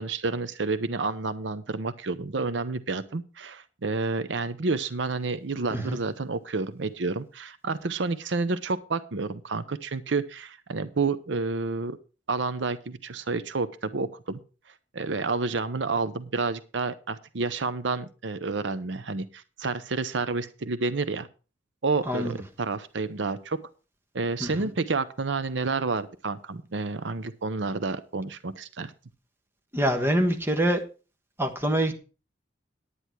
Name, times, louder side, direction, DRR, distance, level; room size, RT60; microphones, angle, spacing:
voice 1, 0.0-12.0 12.3-14.4 14.9-21.3 21.8-23.6 24.1-28.9, right 3 dB, 75° right, 0.8 m, -29 dB
voice 2, 29.7-30.8 31.4-31.9, right 1 dB, 15° right, 1.3 m, -25 dB
10.0 x 9.8 x 4.5 m
head